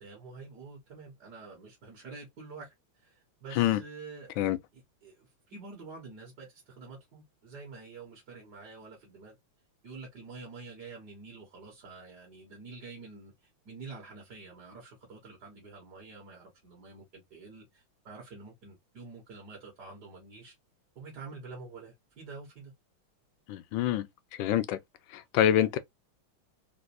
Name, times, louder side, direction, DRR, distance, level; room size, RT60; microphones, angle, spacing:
voice 1, 0.0-4.3 4.7-9.4 9.8-20.5 21.0-22.7, right 4 dB, 55° right, 1.8 m, -47 dB
voice 2, 23.5-24.1 24.4-24.8 25.1-25.8, left 11 dB, 75° left, 1.2 m, -26 dB
4.0 x 2.6 x 2.6 m
omnidirectional pair, 2.3 m